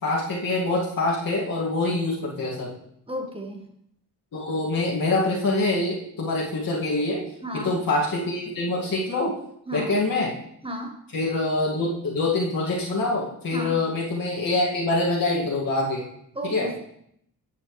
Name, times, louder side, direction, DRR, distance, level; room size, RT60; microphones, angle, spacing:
voice 1, 0.0-2.7 4.3-7.2 7.5-9.4 9.7-10.3 11.1-16.1 16.4-16.7, left 2 dB, 60° left, -5 dB, 2.3 m, -25 dB
voice 2, 3.1-3.7 7.4-7.8 9.7-9.9 10.6-11.0 13.5-13.8 16.3-16.8, equal, 15° right, 3 dB, 1.6 m, -33 dB
11.0 x 7.4 x 3.3 m, 0.72 s
cardioid pair, 80°, 39 cm